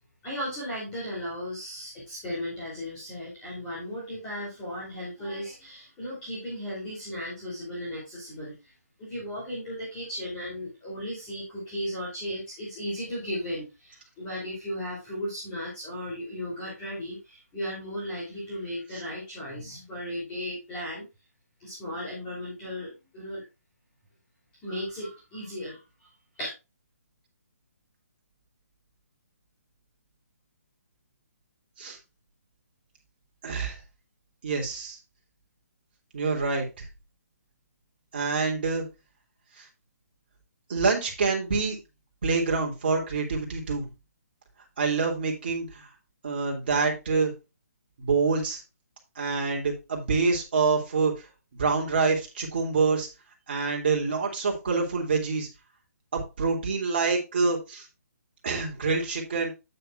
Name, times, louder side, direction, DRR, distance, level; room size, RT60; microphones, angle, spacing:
voice 1, 0.2-8.5 9.0-21.0 21.6-23.4 24.6-25.8 26.4-26.5, equal, 10° left, -8 dB, 3.2 m, -35 dB
voice 2, 33.4-33.8 34.4-35.0 36.1-36.9 38.1-38.8 39.6-39.7 40.7-41.8 42.2-43.8 44.8-45.9 46.2-47.3 48.0-48.6 49.2-51.1 51.6-53.1 53.5-55.5 56.4-57.9 58.4-59.5, right 4 dB, 35° right, 0 dB, 2.7 m, -26 dB
9.1 x 8.6 x 2.4 m, 0.26 s
hypercardioid pair, 175°, 9 cm